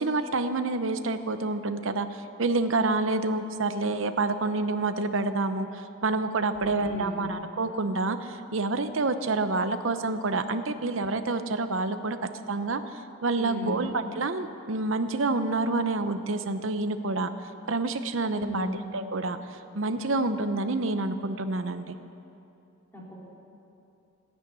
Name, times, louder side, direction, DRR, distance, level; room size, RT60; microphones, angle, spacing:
voice 1, 0.0-12.2 12.5-17.3 17.7-18.7 18.9-22.0, right 3 dB, 70° right, 9 dB, 0.8 m, -28 dB
voice 2, 6.5-7.3 13.4-13.8 18.3-18.8 22.9-23.1, equal, 10° left, -5 dB, 3.6 m, -35 dB
15.0 x 10.0 x 9.4 m, 2.8 s
head